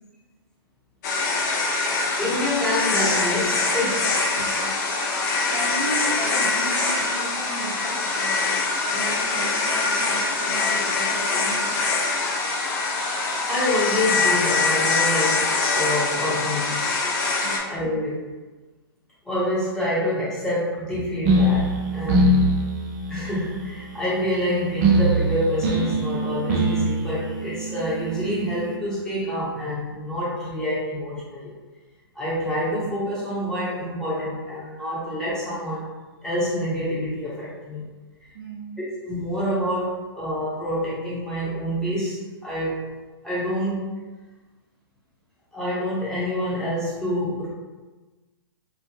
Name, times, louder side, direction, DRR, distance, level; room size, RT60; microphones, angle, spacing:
sound 1, 1.0-17.6, left 3 dB, 45° left, 0.5 m, -24 dB
voice 1, 2.2-4.1 13.5-16.9 17.7-18.3 19.2-22.3 23.1-31.5 32.1-35.9 36.2-37.9 39.0-42.8 43.2-43.9 45.5-47.5, equal, 5° left, -10 dB, 0.9 m, -27 dB
voice 2, 4.3-4.7 5.5-11.7 17.4-17.7 38.3-38.8, right 2 dB, 70° right, -3 dB, 0.8 m, -35 dB
sound 2, 21.3-28.8, right 1 dB, 35° right, 0.5 m, -23 dB
3.0 x 2.1 x 2.9 m, 1.2 s
hypercardioid pair, 125°, 13 cm